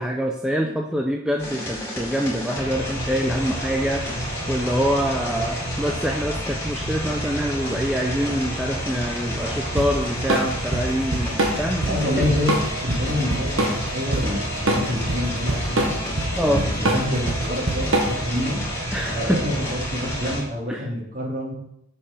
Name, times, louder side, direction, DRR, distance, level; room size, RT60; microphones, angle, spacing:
voice 1, 0.0-12.3 16.4-16.6 18.9-19.4 20.7-20.9, equal, 5° right, 0 dB, 0.5 m, -25 dB
voice 2, 0.6-0.9 11.9-12.5 12.8-15.9 16.4-18.6 19.1-19.5 19.9-21.5, left 1 dB, 40° right, -3 dB, 2.4 m, -27 dB
sound 1, 1.4-20.4, equal, 15° left, 2.5 m, -29 dB
Drum kit / Drum, 9.8-18.4, right 1 dB, 75° right, 1.3 m, -24 dB
7.0 x 5.5 x 5.1 m, 0.79 s
head